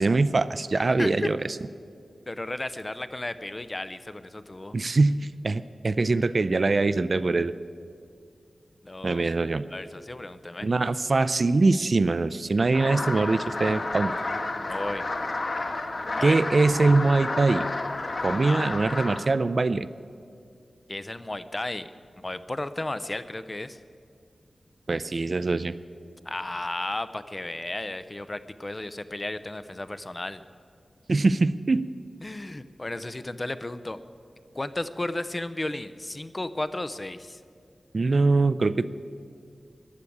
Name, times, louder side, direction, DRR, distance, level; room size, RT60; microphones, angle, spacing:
voice 1, 0.0-1.4 4.7-7.5 9.0-9.6 10.6-14.1 16.2-17.7 18.2-19.9 24.9-25.7 31.1-31.9 37.9-38.9, right 3 dB, 50° right, 14 dB, 0.5 m, -23 dB
voice 2, 0.7-1.3 2.3-4.8 8.8-9.2 9.7-10.7 14.7-15.0 16.1-16.4 18.4-18.9 20.9-21.9 22.2-23.8 26.2-30.4 32.2-34.0 34.5-37.4, left 2 dB, 25° left, 12 dB, 0.6 m, -34 dB
sound 1, 12.7-19.2, left 2 dB, 50° left, 1.3 m, -31 dB
15.0 x 11.0 x 8.6 m, 2.3 s
wide cardioid pair, 105°, 0 cm